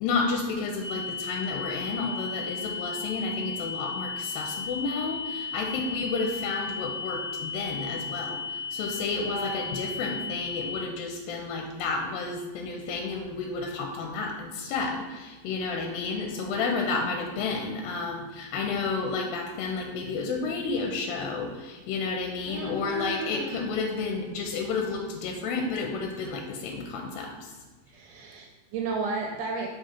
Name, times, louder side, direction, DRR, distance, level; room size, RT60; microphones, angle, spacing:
voice 1, 0.0-27.3, left 4 dB, 85° left, 2 dB, 2.3 m, -31 dB
sound 1, 0.8-10.8, left 5 dB, 60° left, 1.6 m, -35 dB
voice 2, 5.6-6.3 9.2-9.7 10.0-10.3 22.4-23.6 24.1-24.6 27.9-29.7, right 3 dB, 80° right, 1 dB, 1.9 m, -35 dB
5.2 x 3.7 x 5.7 m, 1.3 s
omnidirectional pair, 4.2 m